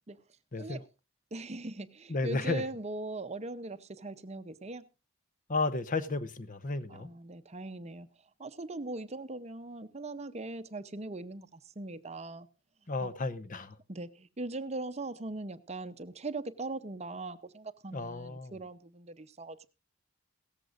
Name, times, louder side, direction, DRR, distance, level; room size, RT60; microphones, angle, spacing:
voice 1, 0.5-0.8 2.1-2.6 5.5-7.1 12.9-13.8 17.9-18.6, left 3 dB, 40° left, 0.9 m, -33 dB
voice 2, 1.3-4.8 6.9-8.1 8.4-12.5 13.0-13.1 13.9-19.7, right 2 dB, 30° right, 0.7 m, -40 dB
17.5 x 14.5 x 2.5 m
head